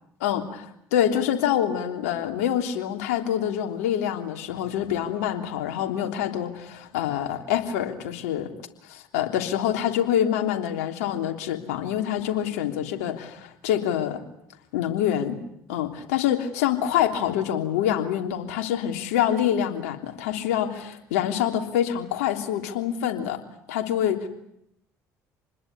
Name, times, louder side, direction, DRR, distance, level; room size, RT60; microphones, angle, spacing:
voice 1, 0.9-8.5 8.9-14.2 14.7-15.4 15.7-23.4 23.7-24.3, left 10 dB, 85° left, 4 dB, 3.3 m, -26 dB
27.5 x 21.0 x 9.6 m, 0.74 s
hypercardioid pair, 70°, 8 cm